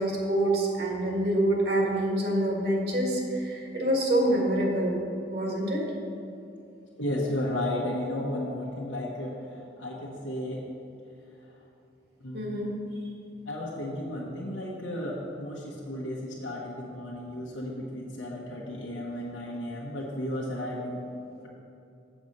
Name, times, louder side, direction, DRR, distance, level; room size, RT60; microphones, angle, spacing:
voice 1, 0.0-5.0 5.3-5.8 12.3-12.7, right 1 dB, 55° right, -1 dB, 1.7 m, -26 dB
voice 2, 7.0-10.6 11.4-11.6 12.2-12.4 13.4-21.0, left 1 dB, 85° left, -4 dB, 1.1 m, -34 dB
7.4 x 7.1 x 5.3 m, 2.7 s
head